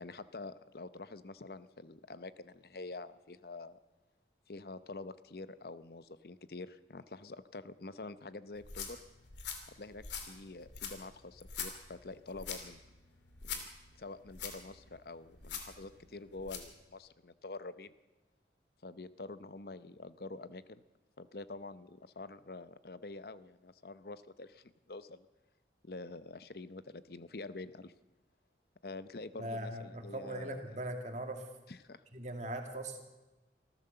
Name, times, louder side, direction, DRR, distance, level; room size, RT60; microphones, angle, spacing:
voice 1, 0.0-3.8 4.5-9.0 9.7-12.8 13.4-13.6 14.0-17.9 18.8-20.8 21.2-25.3 25.8-27.9 28.8-30.6 31.7-32.0, left 3 dB, 60° left, 14 dB, 0.8 m, -47 dB
sound 1, 8.5-16.7, left 6 dB, 90° left, 2.7 m, -45 dB
voice 2, 29.4-31.4 32.1-33.0, right 1 dB, 40° right, 4 dB, 2.4 m, -40 dB
25.5 x 15.0 x 6.8 m, 1.1 s
head